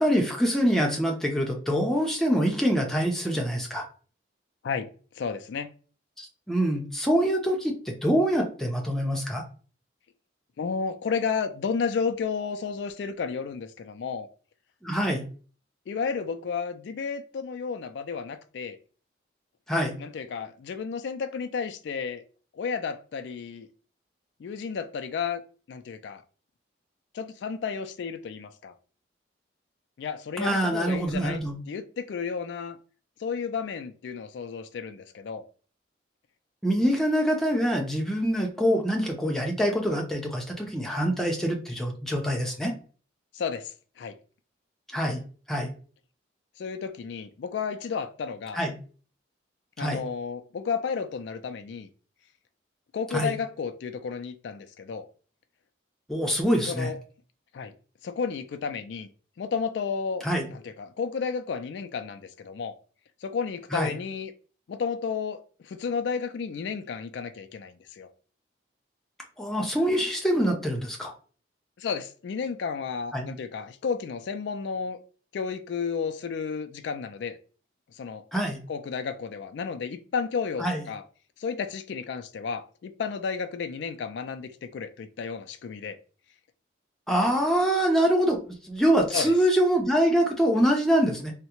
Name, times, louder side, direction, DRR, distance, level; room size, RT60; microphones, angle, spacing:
voice 1, 0.0-3.8 6.2-7.7 8.0-9.4 14.8-15.2 19.7-20.0 30.4-31.6 36.6-42.7 44.9-45.2 45.5-45.7 48.5-48.7 49.8-50.0 53.1-53.3 56.1-56.9 60.2-60.5 63.7-63.9 69.4-71.1 73.1-73.3 78.3-78.6 80.6-80.8 87.1-91.3, equal, ahead, 0.6 m, -25 dB
voice 2, 5.1-5.7 10.6-14.3 15.9-18.8 20.0-22.2 22.5-23.7 24.4-25.4 25.7-26.2 27.1-28.7 30.0-32.8 33.2-35.5 43.3-44.1 46.6-48.6 49.8-51.9 52.9-55.1 56.7-57.0 57.5-57.7 58.0-59.1 59.4-60.3 60.5-62.7 63.2-64.3 64.7-68.1 71.8-75.0 75.3-77.4 77.9-78.2 78.7-81.0 81.4-86.0 89.1-89.3, left 5 dB, 70° left, 0.3 m, -32 dB
3.6 x 2.1 x 2.9 m
head